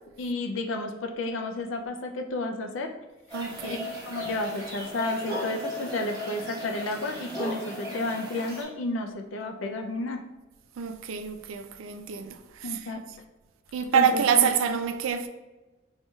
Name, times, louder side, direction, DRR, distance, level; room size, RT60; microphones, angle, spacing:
voice 1, 0.2-2.9 3.6-10.2 12.6-13.0 13.9-14.5, left 2 dB, 70° left, 0.5 m, -32 dB
sound 1, 3.3-8.6, equal, 20° right, 1.2 m, -36 dB
voice 2, 3.3-3.9 10.8-12.9 13.7-15.3, right 7 dB, 80° right, 0.4 m, -26 dB
4.3 x 2.8 x 2.3 m
head